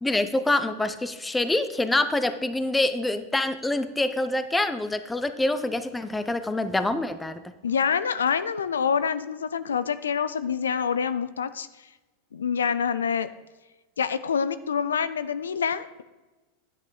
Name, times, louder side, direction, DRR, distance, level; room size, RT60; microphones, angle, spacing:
voice 1, 0.0-7.5, left 2 dB, 10° left, 11 dB, 0.8 m, -26 dB
voice 2, 7.6-11.7 12.3-13.3 14.0-16.0, left 7 dB, 85° left, 14 dB, 0.5 m, -26 dB
10.5 x 9.0 x 4.0 m, 1.2 s
hypercardioid pair, 100°, 0 cm